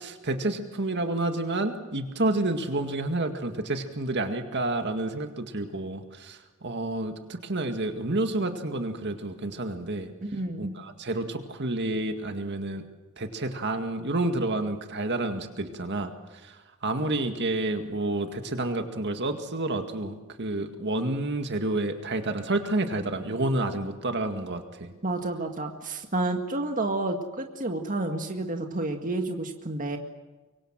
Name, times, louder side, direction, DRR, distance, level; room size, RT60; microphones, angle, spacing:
voice 1, 0.0-10.1 10.6-12.8 13.2-24.9, right 2 dB, 55° right, 6 dB, 2.0 m, -29 dB
voice 2, 10.2-10.7 25.0-30.0, right 2 dB, 40° right, 4 dB, 1.9 m, -30 dB
25.0 x 24.0 x 7.6 m, 1.2 s
head